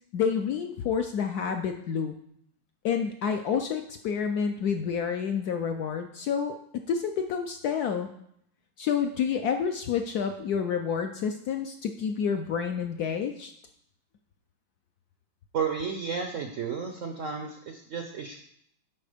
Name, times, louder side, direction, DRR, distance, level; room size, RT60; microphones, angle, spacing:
voice 1, 0.1-2.1 2.8-6.5 6.9-8.1 8.8-13.5, left 7 dB, 75° left, 5 dB, 0.9 m, -29 dB
voice 2, 15.5-18.4, right 6 dB, 75° right, 3 dB, 0.7 m, -32 dB
10.5 x 4.1 x 5.0 m, 0.71 s
omnidirectional pair, 2.2 m